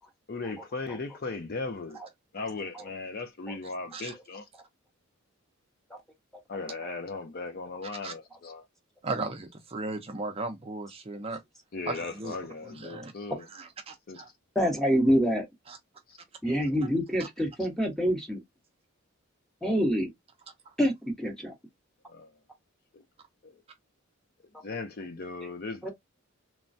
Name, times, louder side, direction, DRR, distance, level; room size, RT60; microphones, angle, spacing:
voice 1, 0.3-2.0 2.3-4.5 6.5-8.6 11.7-13.5 14.1-14.2 16.1-16.2 22.1-22.3 22.9-23.0 23.4-23.6 24.6-25.9, left 3 dB, 45° left, 0.6 m, -37 dB
voice 2, 9.0-11.4 11.9-12.3 12.6-13.1 13.5-14.3 15.7-15.8, right 3 dB, 30° right, 0.5 m, -36 dB
voice 3, 14.5-15.5 16.4-18.4 19.6-20.1 20.8-21.5 25.8-25.9, equal, ahead, 1.0 m, -26 dB
3.1 x 2.2 x 2.5 m
head